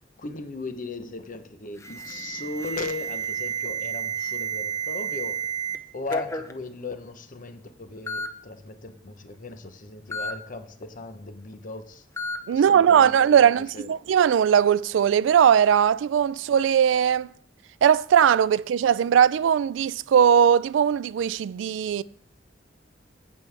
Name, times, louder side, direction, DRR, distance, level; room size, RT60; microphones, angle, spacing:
voice 1, 0.2-5.4 5.9-12.1 12.5-13.9, left 3 dB, 45° left, 0.8 m, -37 dB
Alarm, 1.8-5.8 6.1-6.5 7.4-7.5 8.1-8.3 10.1-10.3 12.2-12.4, right 4 dB, 15° left, 0.6 m, -31 dB
voice 2, 12.5-17.3 17.8-22.0, right 8 dB, 85° right, 0.3 m, -19 dB
15.5 x 5.3 x 3.4 m
head